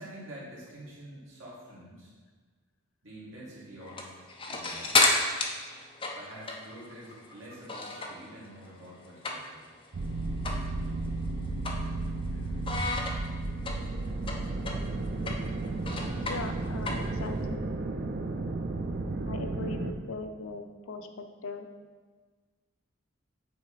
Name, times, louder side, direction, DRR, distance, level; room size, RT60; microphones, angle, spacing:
voice 1, 0.0-2.1 3.0-5.1 6.1-9.6, right 1 dB, 65° right, -6 dB, 2.0 m, -47 dB
sound 1, 3.8-8.3 8.6-9.7 10.0-10.1 10.4-10.7 11.0-12.3 12.6-17.4, left 3 dB, 25° left, 0.5 m, -31 dB
sound 2, 9.9-19.9, right 2 dB, 50° right, 0.5 m, -33 dB
voice 2, 16.2-17.7 19.3-21.7, left 3 dB, 80° left, 6 dB, 0.6 m, -40 dB
7.9 x 3.4 x 4.8 m, 1.4 s
head